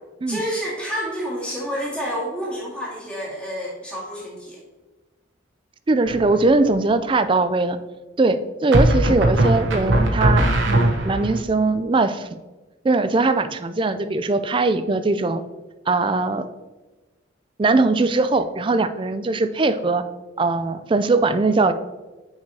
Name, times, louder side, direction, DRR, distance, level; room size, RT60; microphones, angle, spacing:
voice 1, 0.3-4.6, equal, 5° left, -6 dB, 1.9 m, -29 dB
voice 2, 5.9-7.8 8.2-12.3 12.8-15.4 15.9-16.5 17.6-20.0 20.4-21.7, right 3 dB, 25° right, 10 dB, 0.3 m, -20 dB
sound 1, 6.1-6.6 8.7-11.4, right 1 dB, 70° right, 1.0 m, -19 dB
9.4 x 4.8 x 2.8 m, 1.2 s
head